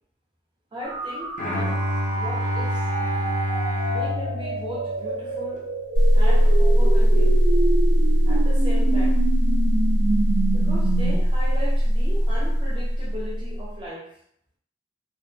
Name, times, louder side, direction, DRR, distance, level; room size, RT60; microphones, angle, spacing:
voice 1, 0.7-2.9 3.9-5.7 6.1-7.4 8.3-9.2 10.5-14.1, equal, 25° right, -3 dB, 0.5 m, -37 dB
sound 1, 0.8-11.2, right 3 dB, 85° right, 0.3 m, -29 dB
Bowed string instrument, 1.4-5.5, left 1 dB, 40° left, 0.6 m, -27 dB
sound 2, 6.0-13.8, equal, 65° left, 1.1 m, -19 dB
2.5 x 2.2 x 2.2 m, 0.66 s
head